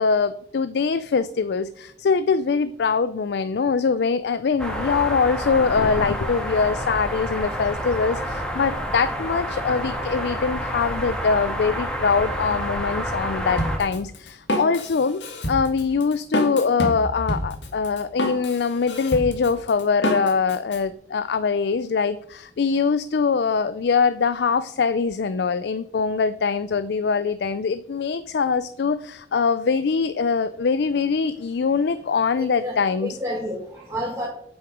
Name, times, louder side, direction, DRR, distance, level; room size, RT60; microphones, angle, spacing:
voice 1, 0.0-15.2 15.5-33.1, left 5 dB, 65° left, 14 dB, 0.4 m, -23 dB
sound 1, 4.6-13.8, equal, 5° left, 1.8 m, -29 dB
Drum kit, 13.6-20.8, left 1 dB, 85° left, 1.7 m, -28 dB
voice 2, 32.4-34.3, equal, 15° right, -3 dB, 1.8 m, -30 dB
8.0 x 7.7 x 5.0 m, 0.66 s
head